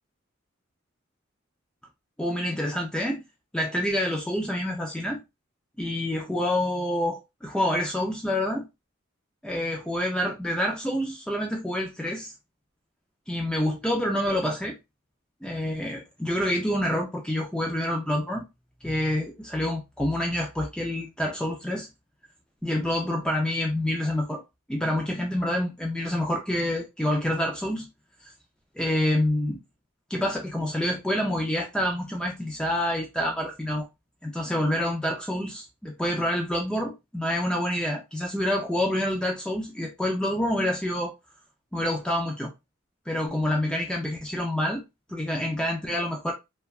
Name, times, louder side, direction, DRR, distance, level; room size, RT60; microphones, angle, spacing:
voice 1, 2.2-3.2 3.5-5.2 5.8-8.6 9.4-12.3 13.3-14.7 15.4-18.4 18.8-21.9 22.6-24.4 24.7-27.9 28.2-28.3 28.8-29.6 30.1-33.9 34.2-41.1 41.7-42.5 43.1-44.8 45.1-46.3, left 1 dB, 5° left, 0.4 m, -27 dB
3.2 x 2.2 x 2.3 m
head